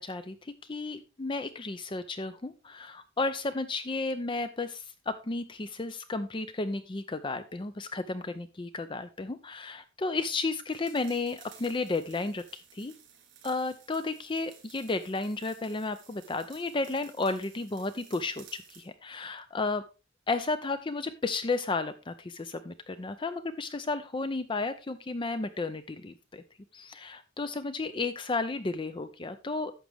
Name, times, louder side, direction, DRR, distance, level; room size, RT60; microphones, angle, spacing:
voice 1, 0.0-12.9 13.4-19.8 20.3-26.4 26.7-29.7, left 3 dB, 25° left, 12 dB, 0.5 m, -33 dB
sound 1, 10.7-18.9, right 8 dB, 65° right, 3.7 m, -55 dB
11.5 x 7.3 x 3.4 m, 0.30 s
head